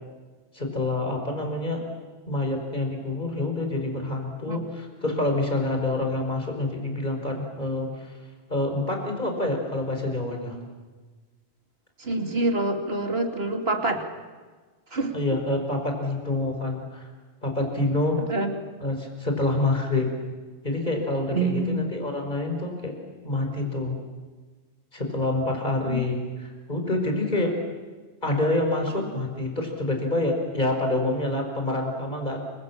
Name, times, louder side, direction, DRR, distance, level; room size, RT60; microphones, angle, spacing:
voice 1, 0.5-1.8 2.3-8.1 8.5-10.6 15.1-17.1 17.4-18.2 18.8-20.1 20.6-22.9 23.2-24.0 24.9-27.5 28.2-32.4, left 2 dB, 40° left, 3 dB, 5.5 m, -27 dB
voice 2, 12.0-14.0 14.9-15.4 18.2-18.5 21.3-21.9 25.8-26.1 28.9-29.0, right 2 dB, 60° right, 4 dB, 3.1 m, -27 dB
29.5 x 26.0 x 7.4 m, 1.4 s
omnidirectional pair, 1.2 m